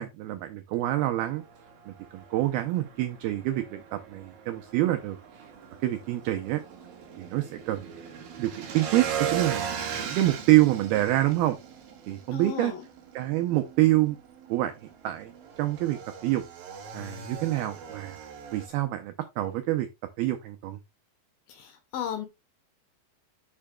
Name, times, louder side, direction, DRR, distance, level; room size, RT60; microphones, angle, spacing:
voice 1, 0.0-1.4 1.9-5.5 5.8-6.6 7.2-7.9 8.4-11.6 12.1-12.7 13.1-14.2 14.5-14.7 15.0-15.3 15.6-16.4 16.9-18.2 18.5-19.9 20.2-20.8, right 16 dB, 85° right, 2.2 m, -26 dB
Motorcycle / Engine, 1.2-18.7, right 7 dB, 60° right, 2.9 m, -39 dB
voice 2, 12.3-12.8 21.5-22.3, left 8 dB, 70° left, 2.6 m, -35 dB
12.0 x 5.6 x 2.3 m
omnidirectional pair, 5.1 m